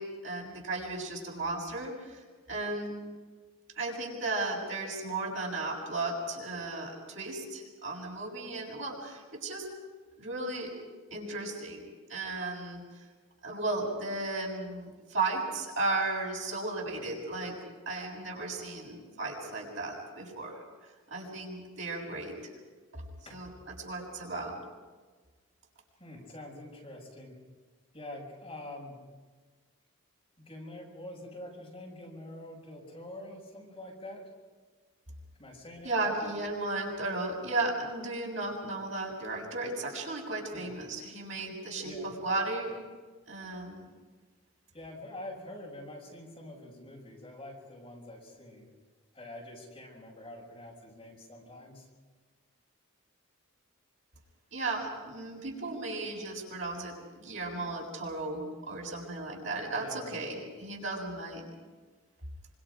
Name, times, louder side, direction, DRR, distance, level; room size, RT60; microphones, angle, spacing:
voice 1, 0.0-2.2 2.5-3.0 3.8-9.7 10.2-10.7 11.1-13.1 13.4-17.6 17.9-22.5 22.9-23.0 23.3-23.5 23.8-24.6 35.8-42.8 43.3-43.9 54.5-61.5, right 2 dB, 60° right, -2 dB, 7.1 m, -35 dB
voice 2, 26.0-27.4 27.9-29.0 30.4-34.3 35.4-36.2 40.5-40.7 41.8-42.1 44.7-48.7 49.1-51.9 59.7-60.3, left 1 dB, 25° left, -2 dB, 6.1 m, -46 dB
26.5 x 26.0 x 5.2 m, 1.4 s
head